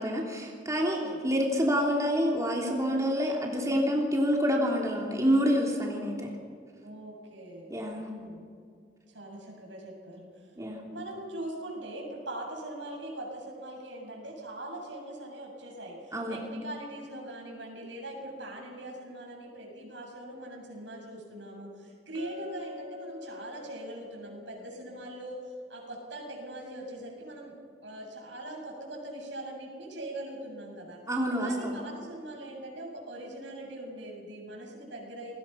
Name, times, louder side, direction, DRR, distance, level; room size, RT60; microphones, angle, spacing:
voice 1, 0.0-6.3 7.7-8.1 10.6-10.8 16.1-16.4 31.1-31.7, equal, 20° right, -1 dB, 3.2 m, -27 dB
voice 2, 0.9-1.2 6.8-7.7 8.0-8.5 9.1-10.5 10.9-25.4 25.7-27.5 27.8-31.0 31.4-35.3, right 1 dB, 85° right, 0 dB, 7.5 m, -41 dB
Chink clink, 22.1-26.3, left 4 dB, 90° left, 3.9 m, -47 dB
29.0 x 21.0 x 5.8 m, 2.2 s
head